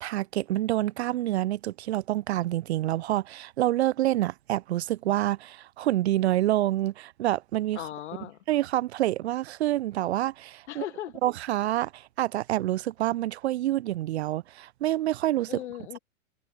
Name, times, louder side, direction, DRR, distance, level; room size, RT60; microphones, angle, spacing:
voice 1, 0.0-7.9 8.5-10.8 11.2-15.6, right 14 dB, 55° right, 0.5 m, -27 dB
voice 2, 7.8-8.4 10.7-11.2 15.5-16.0, left 12 dB, 60° left, 1.8 m, -37 dB
figure-of-eight pair, 105°, 39 cm